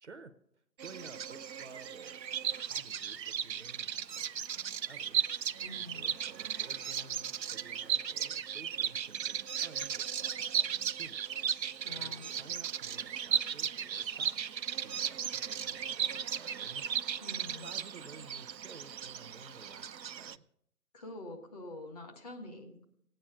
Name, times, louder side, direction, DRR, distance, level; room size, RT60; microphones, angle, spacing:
voice 1, 0.0-2.2 2.5-11.3 12.0-17.0 17.5-20.5, right 3 dB, 45° right, 10 dB, 0.8 m, -54 dB
Bird vocalization bird call bird song, 0.8-20.4, right 8 dB, 85° right, 0.6 m, -36 dB
voice 2, 5.6-6.2 11.8-12.3 17.2-17.7 20.9-22.8, left 2 dB, 25° left, 1 dB, 1.5 m, -46 dB
17.5 x 9.0 x 6.1 m, 0.74 s
figure-of-eight pair, 155°, 49 cm